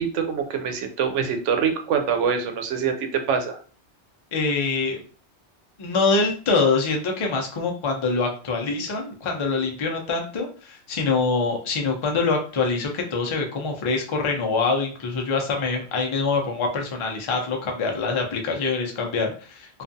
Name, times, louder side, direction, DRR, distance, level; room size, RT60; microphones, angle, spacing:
voice 1, 0.0-3.6, right 6 dB, 90° right, 6 dB, 0.9 m, -24 dB
voice 2, 4.3-5.0 5.8-19.8, left 4 dB, 50° left, 1 dB, 0.3 m, -25 dB
2.4 x 2.3 x 2.6 m, 0.39 s
omnidirectional pair, 1.2 m